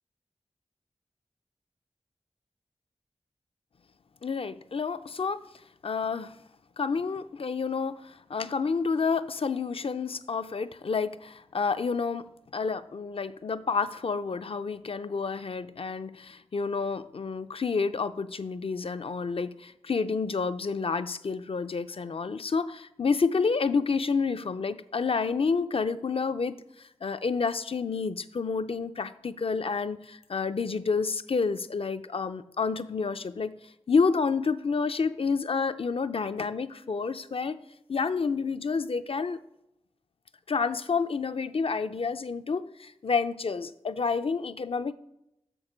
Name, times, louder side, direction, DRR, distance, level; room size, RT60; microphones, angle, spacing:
voice 1, 4.2-5.4 5.8-6.3 6.8-12.2 12.5-26.6 27.0-33.5 33.9-37.6 37.9-39.4 40.5-44.9, left 5 dB, 55° left, 12 dB, 0.4 m, -29 dB
6.5 x 6.2 x 4.9 m, 0.82 s
wide cardioid pair, 50°, 11 cm